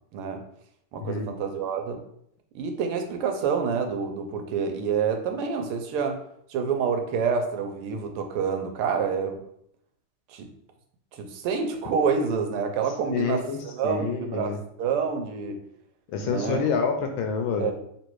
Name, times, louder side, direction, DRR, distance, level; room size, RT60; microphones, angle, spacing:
voice 1, 0.1-0.4 0.9-2.0 2.5-6.2 6.5-9.4 10.3-10.5 11.1-15.6 16.2-16.6 17.6-17.7, right 6 dB, 85° right, 5 dB, 1.6 m, -27 dB
voice 2, 1.0-1.3 13.1-14.6 16.1-17.7, left 5 dB, 75° left, 4 dB, 1.2 m, -28 dB
3.5 x 3.1 x 4.5 m, 0.70 s
omnidirectional pair, 2.4 m